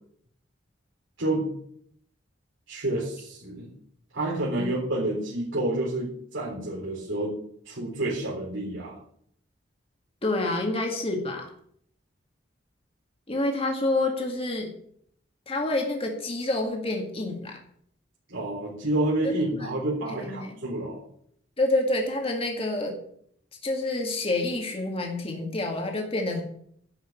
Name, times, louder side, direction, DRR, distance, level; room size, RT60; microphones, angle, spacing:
voice 1, 1.2-1.5 2.7-3.7 4.1-7.3 7.7-9.0 18.3-21.0, right 1 dB, 90° right, -5 dB, 3.9 m, -29 dB
voice 2, 10.2-11.5 13.3-14.7 15.5-17.6 19.6-19.7 20.1-20.6 21.6-22.9 23.6-26.4, left 2 dB, 30° left, 1 dB, 2.1 m, -28 dB
11.5 x 6.1 x 8.9 m, 0.65 s
head